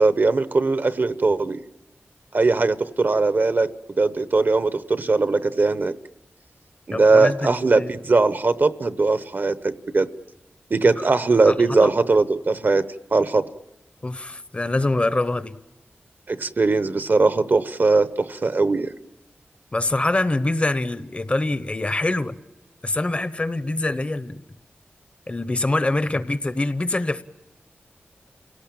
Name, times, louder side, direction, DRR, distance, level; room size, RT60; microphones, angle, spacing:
voice 1, 0.0-1.6 2.3-3.7 4.0-5.9 6.9-10.1 10.7-12.9 13.1-13.5 16.3-18.9, right 3 dB, 50° right, 0.8 m, -20 dB
voice 2, 6.9-7.5 7.7-7.9 10.9-11.0 11.5-11.9 14.0-15.6 19.7-22.4 22.8-24.4 25.3-27.2, left 2 dB, 30° left, 0.9 m, -24 dB
28.5 x 18.0 x 8.7 m
wide cardioid pair, 95°, 4 cm